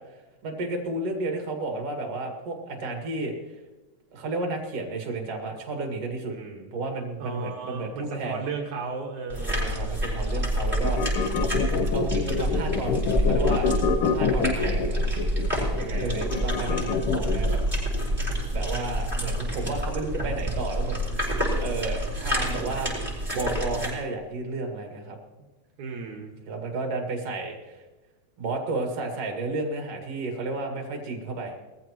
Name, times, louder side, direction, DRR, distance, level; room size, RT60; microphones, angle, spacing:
voice 1, 0.4-3.3 4.1-6.3 6.7-8.4 9.4-11.0 11.9-13.7 14.1-15.0 16.0-17.6 18.5-21.2 21.6-25.2 26.5-27.8 28.4-31.5, right 2 dB, 55° right, 2 dB, 2.9 m, -32 dB
voice 2, 6.3-6.7 7.2-10.1 15.8-16.2 25.8-26.3, right 4 dB, 80° right, 0 dB, 2.8 m, -35 dB
sound 1, 9.3-23.9, equal, 5° right, 5.8 m, -28 dB
sound 2, 10.8-17.6, left 6 dB, 75° left, 1.2 m, -26 dB
21.0 x 14.5 x 3.0 m, 1.1 s
omnidirectional pair, 3.4 m